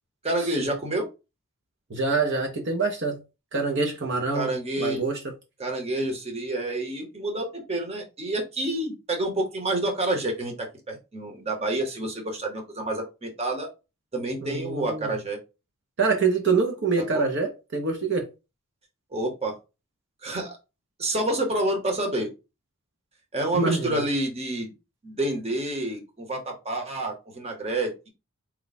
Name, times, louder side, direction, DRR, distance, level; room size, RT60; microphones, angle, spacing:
voice 1, 0.2-1.1 4.3-5.1 5.6-13.7 14.1-15.4 17.0-17.3 19.1-19.6 20.2-20.6 21.0-22.3 23.3-24.7 25.0-28.1, right 1 dB, 30° right, 1.0 m, -28 dB
voice 2, 1.9-3.2 3.5-4.5 4.8-5.2 14.4-15.1 16.0-18.3 23.5-24.0, right 4 dB, 55° right, 0.8 m, -25 dB
4.5 x 2.3 x 4.0 m
head